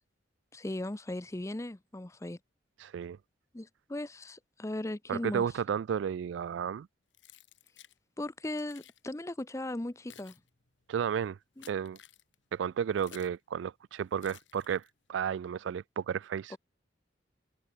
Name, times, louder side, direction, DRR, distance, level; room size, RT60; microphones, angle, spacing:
voice 1, 0.5-2.4 3.5-5.4 8.2-10.4 11.6-11.7, left 1 dB, 15° left, 0.6 m, -37 dB
voice 2, 2.8-3.2 5.1-6.9 10.9-11.4 11.7-12.0 12.5-14.8 15.1-16.6, right 8 dB, 85° right, 0.3 m, -32 dB
Keys jangling, 7.1-8.0 8.5-9.0 9.7-13.4 14.2-15.1, left 10 dB, 85° left, 1.7 m, -56 dB
head